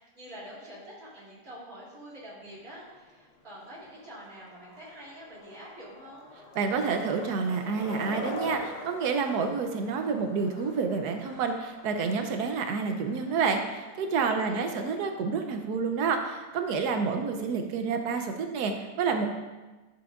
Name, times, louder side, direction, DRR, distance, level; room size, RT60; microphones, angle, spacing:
voice 1, 0.0-6.3 14.4-15.0, equal, 60° right, -7 dB, 3.4 m, -46 dB
Skateboard, 2.4-17.6, left 2 dB, 45° left, 1.2 m, -46 dB
voice 2, 6.6-19.3, right 5 dB, 80° right, 5 dB, 1.2 m, -29 dB
10.5 x 7.1 x 2.5 m, 1.2 s
omnidirectional pair, 1.7 m